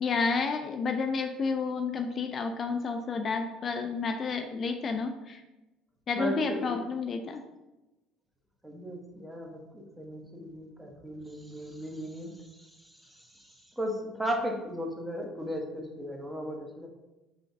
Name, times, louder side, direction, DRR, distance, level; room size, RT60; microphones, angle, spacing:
voice 1, 0.0-5.4 6.1-7.4, left 4 dB, 45° left, 6 dB, 0.3 m, -30 dB
voice 2, 6.1-6.8 8.6-16.9, equal, 10° right, 1 dB, 0.8 m, -36 dB
3.7 x 2.6 x 3.4 m, 1.0 s
hypercardioid pair, 65°, 0 cm